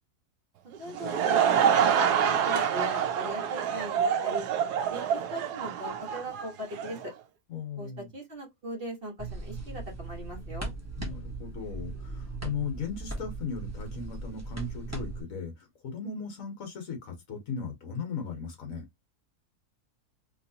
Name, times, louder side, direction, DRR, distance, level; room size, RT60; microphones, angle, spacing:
Laughter / Crowd, 0.7-7.0, right 8 dB, 90° right, 1.2 m, -26 dB
voice 1, 0.8-4.4 4.9-7.1 7.8-10.7, equal, 40° right, 1.5 m, -39 dB
voice 2, 7.5-8.1 11.0-18.9, left 6 dB, 60° left, 1.4 m, -37 dB
sound 1, 9.2-15.2, right 3 dB, 10° right, 0.9 m, -38 dB
3.1 x 3.0 x 2.7 m
omnidirectional pair, 1.6 m